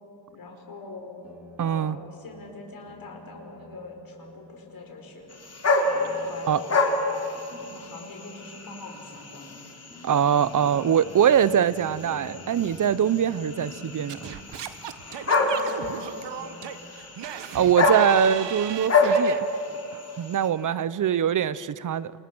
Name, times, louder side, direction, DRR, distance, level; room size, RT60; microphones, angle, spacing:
voice 1, 0.3-1.2 1.6-5.4 6.2-6.9 7.5-9.6 15.3-16.7 20.6-21.1, left 2 dB, 50° left, 2 dB, 4.9 m, -43 dB
sound 1, 1.2-5.0 5.8-8.6 9.4-9.5 9.9-14.3, left 1 dB, 5° right, 5.7 m, -49 dB
voice 2, 1.6-2.0 6.5-6.6 10.0-14.2 17.5-19.4 19.9-22.1, right 9 dB, 45° right, 17 dB, 0.7 m, -23 dB
sound 2, 5.3-20.5, left 2 dB, 35° left, 3.4 m, -28 dB
Singing / Scratching (performance technique), 14.1-19.4, right 9 dB, 65° right, 1.4 m, -37 dB
29.0 x 28.0 x 6.1 m, 2.8 s
cardioid pair, 110°, 45 cm